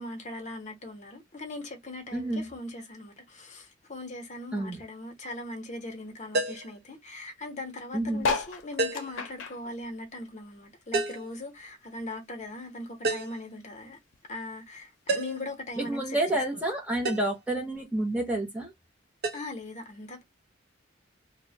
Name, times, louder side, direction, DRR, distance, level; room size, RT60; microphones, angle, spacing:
voice 1, 0.0-14.0 14.3-16.2 16.5-16.6 19.3-20.2, left 2 dB, 40° left, 0.7 m, -40 dB
voice 2, 2.1-2.5 4.5-4.8 7.9-8.3 15.8-18.7, right 1 dB, 5° right, 0.7 m, -29 dB
sound 1, 6.3-6.7 8.8-9.2 10.9-11.3 13.0-13.4 15.1-15.5 17.0-17.3 19.2-19.4, right 2 dB, 55° right, 0.6 m, -29 dB
sound 2, 8.2-10.9 11.3-12.8 13.3-13.4 13.6-13.7 13.8-14.2 15.0-15.1, left 4 dB, 85° left, 0.5 m, -34 dB
2.6 x 2.0 x 2.6 m
head